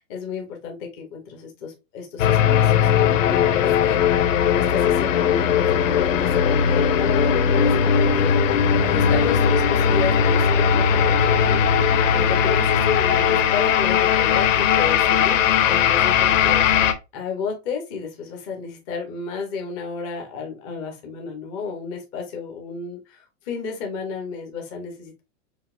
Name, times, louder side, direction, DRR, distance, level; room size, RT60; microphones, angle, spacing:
voice 1, 0.0-8.4 8.8-11.7 12.1-16.8 17.1-25.2, left 5 dB, 15° left, 2 dB, 0.4 m, -32 dB
sound 1, 2.2-16.9, left 7 dB, 75° left, 0.9 m, -19 dB
5.8 x 2.5 x 2.3 m, 0.26 s
supercardioid pair, 165°, 39 cm